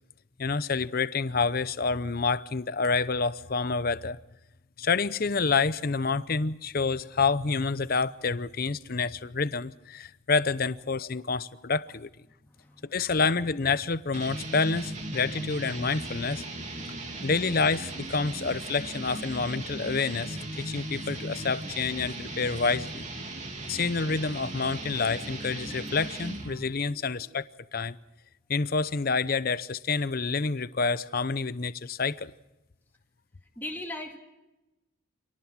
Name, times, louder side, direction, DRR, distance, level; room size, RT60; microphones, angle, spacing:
voice 1, 0.4-4.2 4.8-12.1 12.9-16.4 17.2-23.0 23.7-27.4 27.7-28.0 28.5-32.3, left 4 dB, 45° left, 0.7 m, -28 dB
sound 1, 14.1-26.7, right 2 dB, 35° right, 3.1 m, -37 dB
voice 2, 33.6-34.2, left 1 dB, 10° left, 2.2 m, -39 dB
26.5 x 19.0 x 6.1 m
head